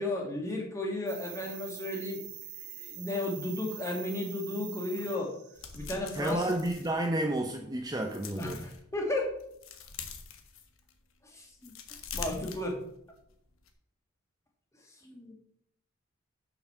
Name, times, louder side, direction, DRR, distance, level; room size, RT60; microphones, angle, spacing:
voice 1, 0.0-2.2 2.6-5.3 5.7-6.5 8.4-9.3 11.2-11.7 12.1-12.8 14.8-15.3, left 2 dB, 15° left, 0 dB, 1.8 m, -34 dB
sound 1, 1.1-6.8, right 11 dB, 90° right, 1.3 m, -45 dB
sound 2, 5.5-7.5 7.9-8.8 9.3-11.0 11.5-13.2 13.5-13.7, left 5 dB, 60° left, 1.1 m, -44 dB
voice 2, 6.2-8.6, right 1 dB, 15° right, 3 dB, 0.6 m, -31 dB
6.6 x 5.9 x 6.7 m, 0.74 s
head